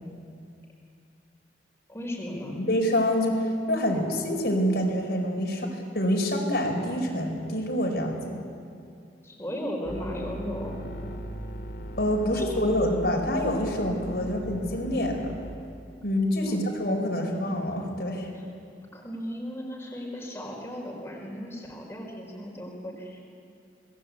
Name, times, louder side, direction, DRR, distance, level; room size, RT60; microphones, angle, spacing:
voice 1, 1.9-2.6 9.2-10.8 12.3-12.6 16.5-16.6 18.3-18.4 18.9-23.2, equal, 15° left, -2 dB, 4.8 m, -36 dB
voice 2, 2.5-8.4 12.0-15.3 16.0-18.3, equal, 65° left, 0 dB, 4.8 m, -26 dB
sound 1, 9.8-15.6, right 1 dB, 85° left, 2.6 m, -38 dB
27.0 x 20.5 x 8.5 m, 2.4 s
head